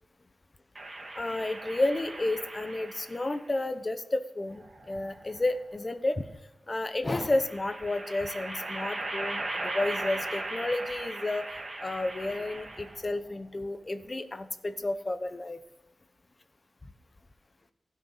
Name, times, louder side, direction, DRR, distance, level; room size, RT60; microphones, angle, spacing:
sound 1, 0.8-3.4 4.5-5.5 7.1-13.1, right 2 dB, 35° right, 2.6 m, -38 dB
voice 1, 1.1-6.2 6.7-11.5 11.8-15.6, left 2 dB, 30° left, 11 dB, 0.9 m, -31 dB
16.0 x 6.3 x 8.1 m, 0.98 s
wide cardioid pair, 130°, 0 cm